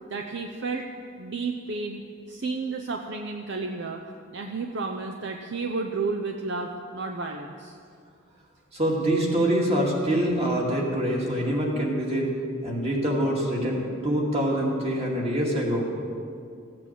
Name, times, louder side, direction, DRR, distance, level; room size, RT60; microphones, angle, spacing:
voice 1, 0.1-0.9 1.2-2.0 2.3-4.0 4.3-7.8, right 3 dB, 55° right, 3 dB, 0.7 m, -32 dB
voice 2, 8.7-12.3 12.6-15.9, right 1 dB, 30° right, -2 dB, 2.3 m, -25 dB
15.0 x 8.7 x 7.4 m, 2.3 s
head